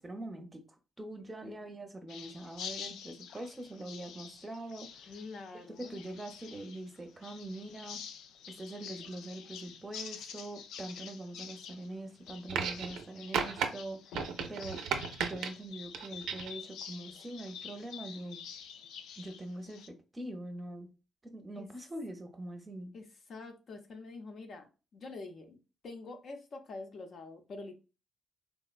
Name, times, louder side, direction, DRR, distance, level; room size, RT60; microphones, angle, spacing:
voice 1, 0.0-5.1 5.8-8.0 8.5-14.8 15.2-18.4 19.2-20.9 21.2-22.9, right 1 dB, 20° right, 0.6 m, -43 dB
sound 1, 2.1-19.9, left 7 dB, 85° left, 0.3 m, -48 dB
voice 2, 5.1-6.0 21.5-21.7 22.9-25.6 25.8-27.8, left 3 dB, 55° left, 0.6 m, -46 dB
sound 2, 12.5-13.0 13.3-13.7 14.1-15.5 15.9-16.6 17.6-17.7, right 7 dB, 85° right, 0.4 m, -34 dB
3.5 x 2.1 x 2.4 m
cardioid pair, 90°, 0 cm